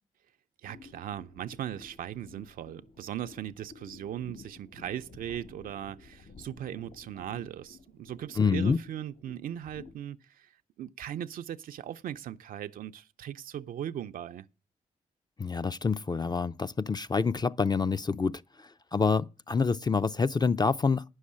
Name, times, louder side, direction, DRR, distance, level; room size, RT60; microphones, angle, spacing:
sound 1, 0.6-9.9, left 4 dB, 60° left, 2.6 m, -53 dB
voice 1, 0.6-10.5 10.8-14.5, right 10 dB, 80° right, 0.5 m, -39 dB
voice 2, 8.4-8.8 15.4-21.0, left 5 dB, 30° left, 0.5 m, -27 dB
9.4 x 6.4 x 8.4 m
cardioid pair, 65°, 14 cm